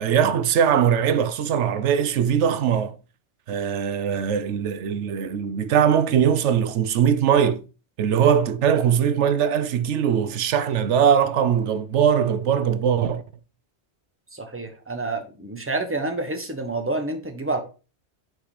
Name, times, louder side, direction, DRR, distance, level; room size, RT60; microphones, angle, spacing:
voice 1, 0.0-2.9 3.5-7.6 8.0-13.2, right 8 dB, 85° right, 1.0 m, -21 dB
voice 2, 14.3-17.6, right 2 dB, 10° right, 1.2 m, -28 dB
6.4 x 5.0 x 4.9 m
omnidirectional pair, 1.2 m